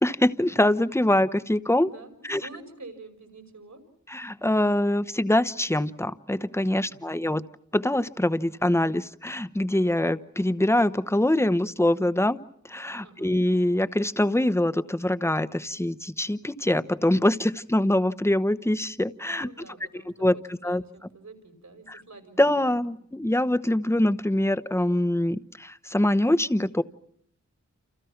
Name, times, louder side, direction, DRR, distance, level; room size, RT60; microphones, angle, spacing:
voice 1, 0.0-1.9 2.2-2.4 4.1-7.4 7.7-12.4 12.6-19.5 20.2-20.3 20.6-20.8 21.9-22.0 22.4-26.8, left 1 dB, 10° left, 13 dB, 1.0 m, -24 dB
voice 2, 1.8-3.8 6.8-7.2 13.0-13.3 19.3-22.8, right 3 dB, 70° right, 7 dB, 5.7 m, -48 dB
29.5 x 29.0 x 6.0 m, 0.66 s
wide cardioid pair, 80°, 29 cm